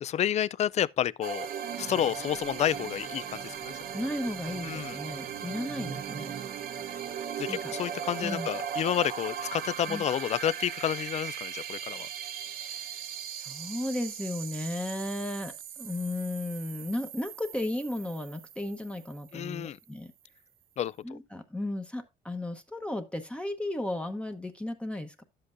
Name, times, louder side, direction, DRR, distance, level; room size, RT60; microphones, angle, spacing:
voice 1, 0.0-1.5 1.8-3.8 4.6-5.0 7.4-12.1 19.3-19.8 20.8-21.2, left 10 dB, 40° left, 0.4 m, -30 dB
sound 1, 1.2-19.7, right 8 dB, 60° right, 0.9 m, -38 dB
voice 2, 3.9-6.3 7.5-7.7 8.2-8.5 9.9-10.0 12.5-13.0 13.3-20.1 21.0-25.2, left 1 dB, 5° left, 1.0 m, -35 dB
11.5 x 7.7 x 2.6 m
cardioid pair, 110°, 17 cm